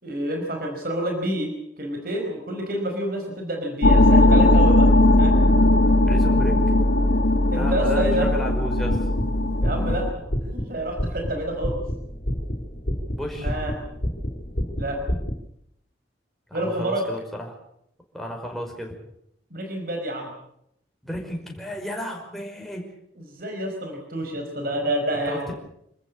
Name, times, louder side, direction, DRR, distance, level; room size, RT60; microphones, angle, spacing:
voice 1, 0.0-4.9 5.2-5.3 7.5-8.3 9.6-10.1 10.4-11.8 13.4-13.7 14.7-15.0 16.5-17.0 19.5-20.3 23.2-25.5, right 1 dB, 55° right, 3 dB, 5.2 m, -28 dB
sound 1, 3.8-10.1, left 1 dB, 85° left, 2.1 m, -18 dB
voice 2, 6.1-6.8 7.5-9.0 13.1-13.5 16.5-17.6 18.1-18.9 21.0-22.9 25.2-25.5, equal, ahead, 0 dB, 5.2 m, -33 dB
sound 2, 8.7-15.3, equal, 60° left, 4.1 m, -30 dB
27.5 x 14.5 x 8.6 m, 0.77 s
head